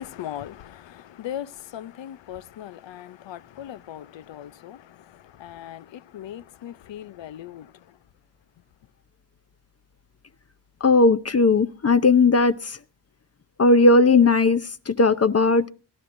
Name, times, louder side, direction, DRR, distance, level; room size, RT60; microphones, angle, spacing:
voice 1, 0.0-7.7, left 11 dB, 80° left, 0.6 m, -39 dB
voice 2, 10.8-12.8 13.6-15.7, left 3 dB, 35° left, 0.6 m, -17 dB
23.0 x 12.5 x 2.6 m
cardioid pair, 60°, 43 cm